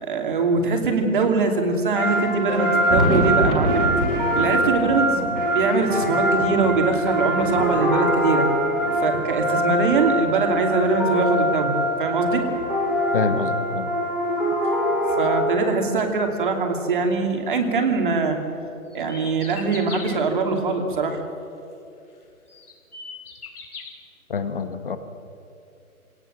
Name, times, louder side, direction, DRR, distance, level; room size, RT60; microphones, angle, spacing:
voice 1, 0.0-3.8 4.4-8.5 9.0-11.7 12.0-12.5 15.2-18.4 18.9-21.2, right 4 dB, 35° right, 4 dB, 2.7 m, -22 dB
sound 1, 2.0-15.8, equal, 5° left, 3.1 m, -23 dB
Thunder, 2.4-11.0 11.6-13.3 14.5-14.6 15.1-15.2 17.1-17.2 18.5-18.6 20.2-20.3, right 2 dB, 70° right, 4.7 m, -30 dB
voice 2, 13.1-13.9 24.3-25.0, left 4 dB, 35° left, 9 dB, 1.4 m, -26 dB
sound 2, 18.9-20.2 21.8-21.9 22.5-23.9, left 5 dB, 80° left, 4.7 m, -38 dB
25.0 x 18.5 x 7.5 m, 2.7 s
hypercardioid pair, 175°, 44 cm